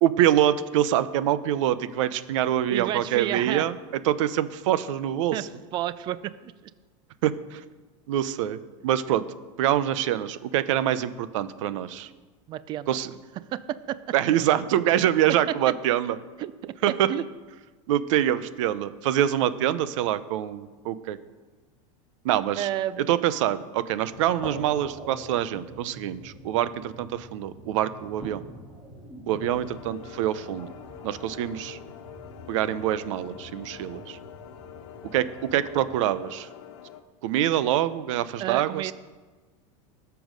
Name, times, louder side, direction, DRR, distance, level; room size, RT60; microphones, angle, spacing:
voice 1, 0.0-3.8 4.0-5.5 7.2-7.6 8.1-9.2 9.6-12.1 12.9-13.1 14.1-16.2 16.8-17.1 17.9-21.2 22.2-22.7 23.0-28.4 29.3-30.7 31.0-31.8 32.5-34.2 35.0-36.5 37.2-38.9, right 11 dB, 70° right, 14 dB, 0.8 m, -25 dB
voice 2, 2.7-3.7 5.3-5.4 5.7-6.5 12.5-12.9 13.5-14.1 16.4-16.7 17.1-17.2 22.6-23.1 38.4-38.9, right 12 dB, 25° right, 16 dB, 0.4 m, -31 dB
sound 1, 24.1-36.0, right 1 dB, 5° right, 4.5 m, -45 dB
sound 2, 29.4-37.0, left 9 dB, 65° left, 1.2 m, -45 dB
19.0 x 7.0 x 5.2 m, 1.3 s
supercardioid pair, 155°, 17 cm